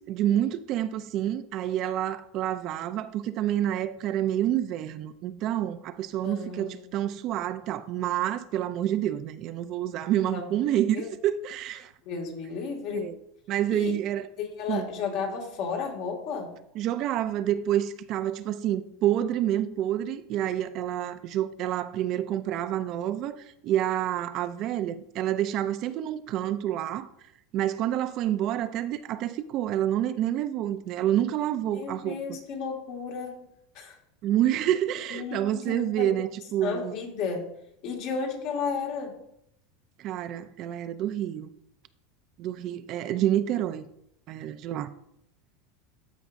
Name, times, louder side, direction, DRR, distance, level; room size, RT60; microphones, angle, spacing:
voice 1, 0.1-11.9 12.9-13.2 13.5-14.3 14.7-14.9 16.8-27.1 27.5-32.2 34.2-36.9 40.0-41.5 42.4-43.9 44.3-44.9, right 11 dB, 50° right, 0.5 m, -28 dB
voice 2, 6.2-6.8 10.3-10.5 10.9-11.1 12.0-13.1 13.7-14.0 14.4-16.5 31.7-33.5 33.7-34.0 35.1-36.1 36.6-37.5 37.8-39.2, left 5 dB, 60° left, 2.0 m, -33 dB
13.5 x 5.0 x 2.6 m
supercardioid pair, 125°, 0 cm